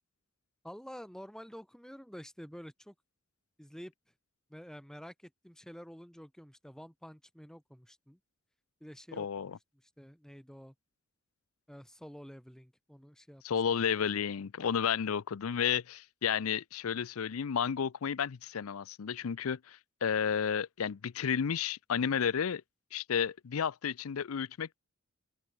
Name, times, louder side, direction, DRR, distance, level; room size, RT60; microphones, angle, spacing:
voice 1, 0.6-2.9 3.6-3.9 4.5-8.2 8.8-9.5 9.8-10.7 11.7-13.4, equal, 5° left, 2.1 m, -49 dB
voice 2, 9.1-9.6 13.4-22.6 22.9-24.8, left 7 dB, 90° left, 0.5 m, -32 dB
open air
head